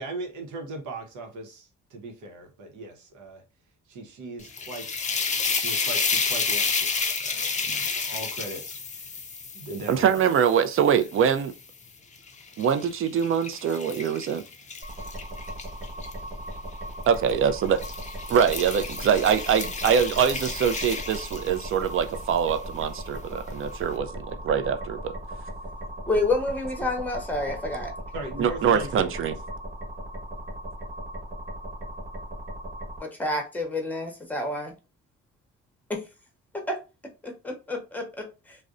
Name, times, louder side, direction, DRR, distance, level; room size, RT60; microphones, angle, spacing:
voice 1, 0.0-3.4 3.9-4.9 5.6-8.6 8.9-9.2 9.5-10.2 28.1-29.1, right 2 dB, 80° right, 0.8 m, -38 dB
sound 1, 4.4-11.6 12.2-16.1 17.0-17.3 17.7-21.9, left 5 dB, 25° left, 0.4 m, -31 dB
voice 2, 9.9-11.5 12.6-14.4 17.1-17.8 18.3-25.1 28.4-29.3, right 7 dB, 45° right, 0.4 m, -24 dB
sound 2, 14.8-33.0, equal, 25° right, 1.1 m, -37 dB
voice 3, 26.1-27.9 33.0-34.8 35.9-36.0 36.7-36.8 37.2-38.6, left 2 dB, 5° left, 0.8 m, -29 dB
2.5 x 2.1 x 2.4 m
cardioid pair, 90°, 30 cm